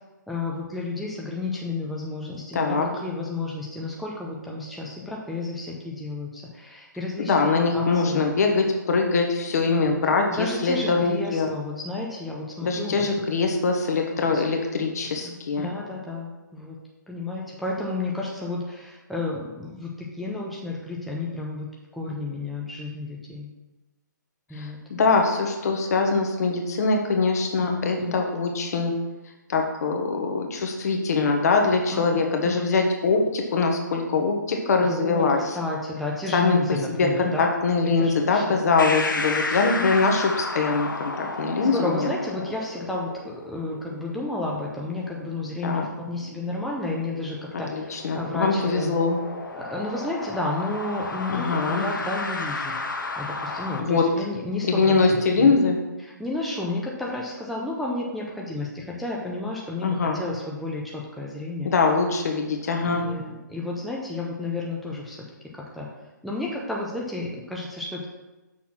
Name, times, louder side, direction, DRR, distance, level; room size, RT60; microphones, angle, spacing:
voice 1, 0.3-8.2 9.7-9.9 10.3-13.1 14.3-14.4 15.2-16.8 17.1-23.5 24.5-24.8 27.6-28.2 30.8-30.9 31.9-32.0 32.4-32.7 34.8-37.5 38.0-38.4 41.6-48.9 49.6-52.8 53.2-55.5 56.0-61.7 62.8-65.2 65.5-65.9 66.2-68.1, left 2 dB, ahead, -4 dB, 0.6 m, -32 dB
voice 2, 2.5-2.9 7.2-11.5 12.6-15.7 24.5-28.9 29.5-35.6 36.3-36.6 37.0-42.1 45.6-45.9 47.7-49.2 51.3-51.8 53.8-54.0 54.7-55.8 59.8-60.2 61.6-63.1, left 4 dB, 55° left, 3 dB, 1.2 m, -23 dB
sound 1, 38.8-53.8, left 3 dB, 85° left, 0.9 m, -33 dB
6.2 x 4.1 x 5.8 m, 1.1 s
hypercardioid pair, 150°, 10 cm